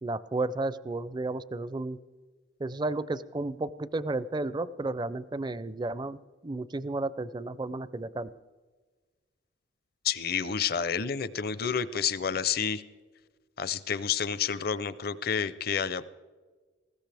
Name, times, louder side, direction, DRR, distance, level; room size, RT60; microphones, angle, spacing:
voice 1, 0.0-2.0 2.6-6.2 6.4-8.3, right 2 dB, 25° right, 16 dB, 0.4 m, -32 dB
voice 2, 10.0-12.8 13.6-16.0, left 7 dB, 55° left, 16 dB, 0.6 m, -29 dB
19.5 x 16.5 x 3.4 m, 1.4 s
head